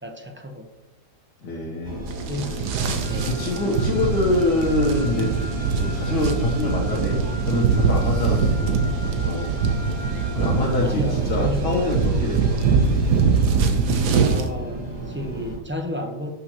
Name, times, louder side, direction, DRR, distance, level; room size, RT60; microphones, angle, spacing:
voice 1, 0.0-0.7 2.3-2.6 3.1-3.4 10.8-11.7 14.2-16.3, left 1 dB, 10° right, 3 dB, 0.7 m, -32 dB
voice 2, 1.4-2.1 3.3-5.3 5.8-9.6 10.4-12.8, left 2 dB, 85° left, -5 dB, 2.0 m, -25 dB
sound 1, 1.8-15.6, right 2 dB, 25° right, 1.4 m, -34 dB
sound 2, 2.1-14.5, right 5 dB, 75° right, 1.5 m, -23 dB
Wind instrument woodwind instrument, 3.0-10.8, left 1 dB, 30° left, 0.7 m, -40 dB
11.0 x 6.7 x 3.1 m, 1.0 s
omnidirectional pair, 1.8 m